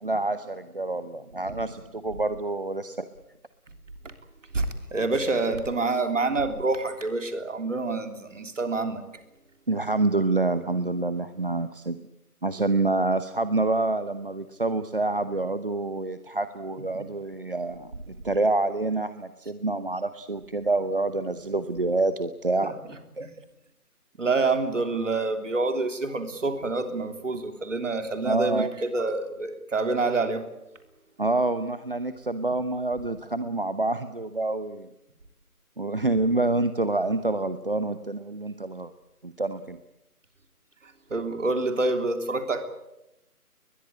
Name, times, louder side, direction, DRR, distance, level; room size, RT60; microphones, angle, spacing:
voice 1, 0.0-3.0 9.7-12.0 12.4-22.7 23.2-23.3 28.2-28.7 31.2-34.9 35.8-38.9 39.2-39.8, right 2 dB, 35° right, 12 dB, 0.9 m, -27 dB
voice 2, 4.5-9.0 16.9-17.0 22.6-22.7 23.2-23.3 24.2-30.4 41.1-42.7, right 3 dB, 50° right, 7 dB, 3.5 m, -27 dB
21.5 x 21.0 x 9.6 m, 0.89 s
figure-of-eight pair, 165°, 46 cm